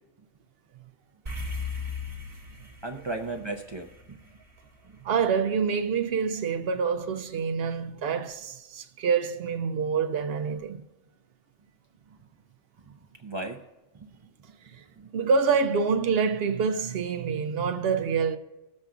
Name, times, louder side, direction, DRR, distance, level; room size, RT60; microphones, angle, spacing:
sound 1, 1.3-5.8, left 4 dB, 25° right, 1.7 m, -38 dB
voice 1, 2.8-4.2 4.8-5.0 12.9-13.0 13.2-13.6 13.9-14.1 15.0-15.1, right 2 dB, 45° right, 0.3 m, -36 dB
voice 2, 5.0-10.8 14.7-14.8 15.1-18.4, right 5 dB, 65° right, 0.7 m, -26 dB
21.0 x 7.4 x 2.5 m
omnidirectional pair, 1.2 m